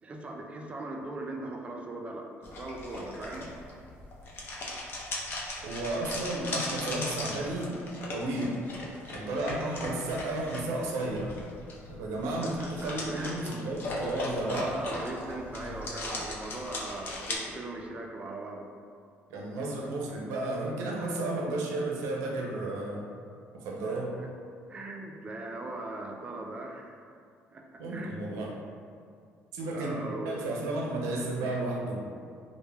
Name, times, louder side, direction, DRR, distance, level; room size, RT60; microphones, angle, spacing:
voice 1, 0.0-3.5 12.4-13.7 14.4-18.7 24.2-24.3 24.7-27.0 27.5-28.4 29.7-30.4, right 2 dB, 25° right, 1 dB, 0.3 m, -39 dB
sound 1, 2.4-17.4, left 2 dB, 50° left, 0.5 m, -38 dB
voice 2, 5.6-7.8 8.1-8.6 9.1-11.3 11.9-14.8 19.3-23.1 23.5-24.1 27.8-28.5 29.5-32.0, right 2 dB, 85° right, -2 dB, 0.5 m, -33 dB
2.1 x 2.1 x 3.2 m, 2.3 s
cardioid pair, 100°, 5 cm